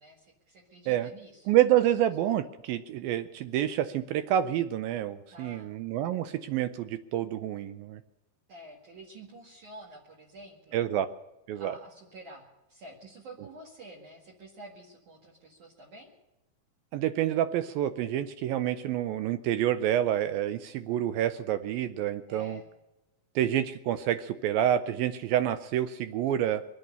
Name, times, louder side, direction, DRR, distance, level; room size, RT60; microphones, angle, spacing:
voice 1, 0.0-1.6 5.3-5.7 8.5-10.8 11.6-16.1 22.3-22.7, right 2 dB, 55° right, -4 dB, 3.3 m, -49 dB
voice 2, 1.5-8.0 10.7-11.1 11.5-11.8 16.9-22.6 23.4-26.7, right 11 dB, 80° right, 11 dB, 2.1 m, -28 dB
24.0 x 8.8 x 6.8 m, 0.99 s
omnidirectional pair, 4.8 m